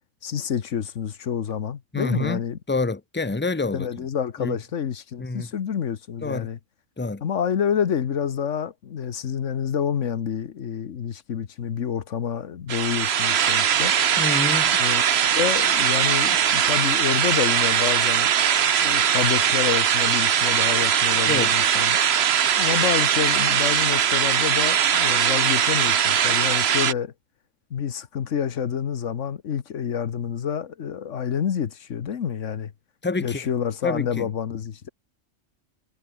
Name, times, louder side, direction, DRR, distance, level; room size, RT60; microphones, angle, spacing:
voice 1, 0.2-2.6 3.7-6.6 7.2-13.9 14.8-15.1 15.3-18.3 18.8-22.0 22.6-27.1 27.7-32.7 33.2-34.9, left 8 dB, 90° left, 1.5 m, -28 dB
voice 2, 1.9-2.4 2.7-3.9 4.4-4.6 5.2-5.5 6.2-6.5 7.0-7.2 14.2-14.7 21.3-21.5 33.0-33.5 33.8-34.3, left 3 dB, 10° left, 0.8 m, -27 dB
sound 1, 12.7-26.9, right 8 dB, 60° right, 1.1 m, -21 dB
omnidirectional pair, 1.2 m